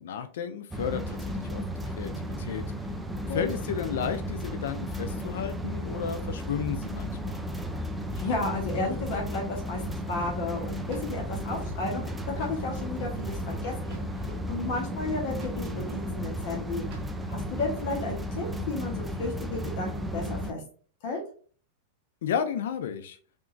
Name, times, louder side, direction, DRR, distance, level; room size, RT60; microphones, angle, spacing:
voice 1, 0.0-2.7 3.2-7.4 22.2-23.2, left 7 dB, 75° left, 9 dB, 0.4 m, -33 dB
sound 1, 0.7-20.5, equal, 5° right, 0.3 m, -34 dB
voice 2, 8.1-9.8 10.1-14.0 14.5-16.9 17.3-20.6 21.0-21.2, left 3 dB, 55° left, 0 dB, 1.0 m, -33 dB
sound 2, 10.6-17.6, right 3 dB, 40° right, 1.0 m, -47 dB
3.6 x 2.9 x 2.5 m, 0.42 s
supercardioid pair, 155°, 0 cm